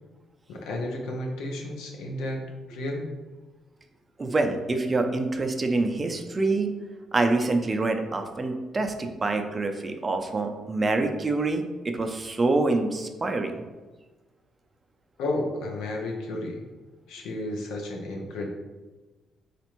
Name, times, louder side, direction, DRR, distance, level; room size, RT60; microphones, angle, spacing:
voice 1, 0.5-3.1 15.2-16.6 17.1-18.5, left 1 dB, 90° left, 1 dB, 0.6 m, -32 dB
voice 2, 4.2-6.7 7.1-13.5, right 3 dB, 30° right, 5 dB, 0.4 m, -26 dB
4.2 x 2.5 x 2.9 m, 1.2 s
cardioid pair, 90°, 0 cm